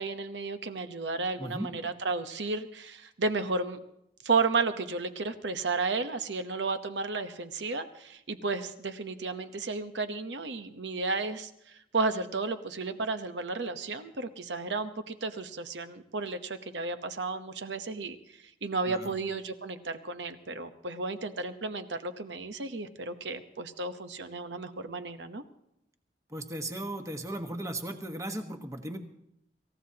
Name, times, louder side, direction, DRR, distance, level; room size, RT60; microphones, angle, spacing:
voice 1, 0.0-3.8 4.2-25.4, right 3 dB, 85° right, 9 dB, 1.0 m, -33 dB
voice 2, 1.4-1.7 18.9-19.1 26.3-29.0, right 1 dB, 20° right, 5 dB, 1.3 m, -36 dB
26.5 x 15.5 x 2.9 m, 0.79 s
head